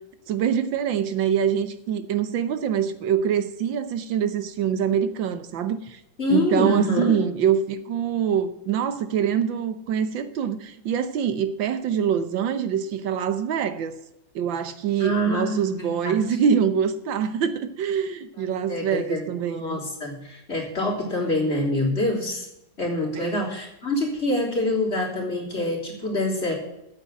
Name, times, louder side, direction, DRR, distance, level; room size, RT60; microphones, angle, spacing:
voice 1, 0.3-6.0 6.3-13.9 14.3-19.8 23.2-23.5, right 8 dB, 80° right, 1.6 m, -25 dB
voice 2, 6.2-7.1 15.0-16.2 18.6-22.5 22.8-26.5, left 1 dB, 35° left, 3.5 m, -26 dB
9.2 x 7.9 x 9.2 m
omnidirectional pair, 2.1 m